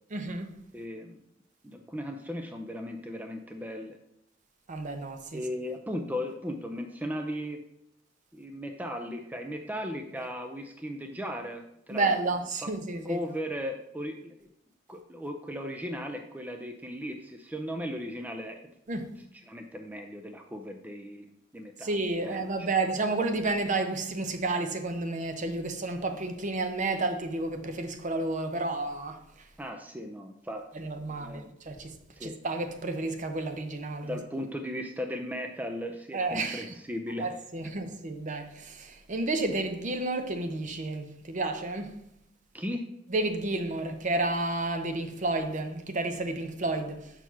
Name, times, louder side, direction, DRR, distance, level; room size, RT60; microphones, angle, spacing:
voice 1, 0.1-0.5 4.7-5.4 11.9-13.2 18.9-19.2 21.8-29.2 30.7-31.9 32.2-34.2 36.1-36.7 37.2-42.0 43.1-47.1, right 2 dB, 40° right, 0.7 m, -31 dB
voice 2, 0.7-1.2 1.6-4.0 5.3-7.6 8.3-12.2 12.6-12.7 13.0-14.5 14.9-18.7 19.5-21.3 21.5-22.0 22.2-22.7 29.6-31.6 32.1-32.4 34.0-37.3 42.5-42.8, equal, 10° right, 0.5 m, -37 dB
5.9 x 4.6 x 5.6 m
head